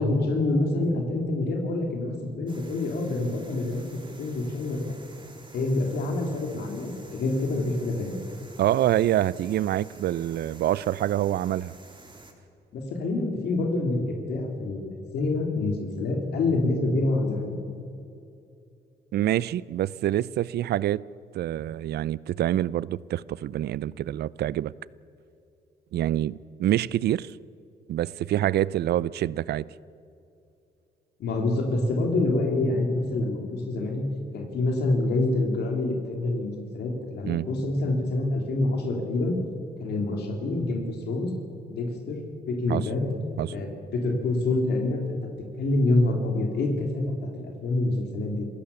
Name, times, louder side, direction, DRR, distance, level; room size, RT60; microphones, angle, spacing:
voice 1, 0.0-4.8 5.5-8.2 12.7-17.5 31.2-34.1 34.3-39.4 39.8-41.3 41.7-42.2 42.5-43.1 43.5-45.2 45.6-48.5, left 2 dB, 75° left, 3.3 m, -26 dB
sound 1, 2.5-12.3, right 2 dB, 30° right, 3.6 m, -50 dB
voice 2, 8.6-11.7 19.1-21.0 21.3-24.7 25.9-26.3 26.6-27.3 27.9-29.6 37.2-37.4 42.7-42.8 43.4-43.5, right 13 dB, 75° right, 0.5 m, -26 dB
27.0 x 16.0 x 7.1 m
cardioid pair, 75°, 17 cm